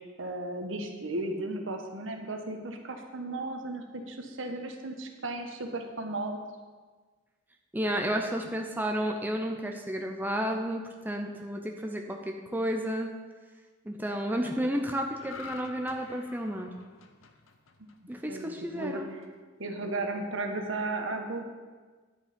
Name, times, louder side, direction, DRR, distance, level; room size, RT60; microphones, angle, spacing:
voice 1, 0.0-6.4 18.3-19.0 19.6-21.5, right 2 dB, 75° right, 4 dB, 1.2 m, -35 dB
voice 2, 7.7-13.1 13.8-16.7 18.1-19.1, equal, 10° right, 2 dB, 0.7 m, -32 dB
sound 1, 15.1-18.6 19.0-19.3, left 4 dB, 90° left, 0.9 m, -47 dB
10.0 x 8.1 x 5.2 m, 1.4 s
head